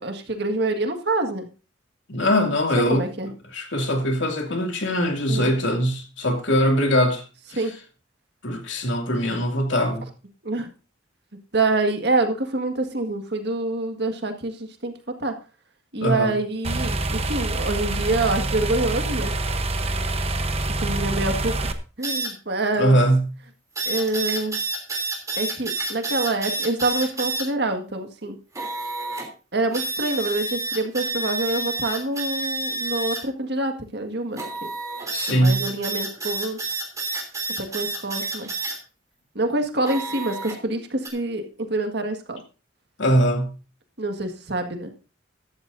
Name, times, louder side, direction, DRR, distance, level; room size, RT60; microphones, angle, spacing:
voice 1, 0.0-1.5 2.8-3.3 5.3-5.5 7.5-7.7 10.4-10.7 11.5-15.3 15.9-19.3 20.8-23.0 23.9-24.6 25.4-28.4 29.5-34.7 35.3-36.6 37.6-38.5 39.4-42.4 44.0-44.9, right 2 dB, 55° right, 1.9 m, -26 dB
voice 2, 2.1-3.0 3.5-7.2 7.5-7.6 8.4-10.1 16.0-16.3 22.8-23.3 35.1-35.7 43.0-43.6, equal, 70° left, 2.6 m, -21 dB
sound 1, 16.6-21.7, right 2 dB, 30° right, 1.0 m, -26 dB
sound 2, 22.0-22.3 23.8-27.4 28.5-29.3 29.7-33.2 34.4-38.7 39.8-40.6 41.0-41.1, right 3 dB, 15° right, 3.3 m, -29 dB
15.0 x 12.0 x 2.7 m
head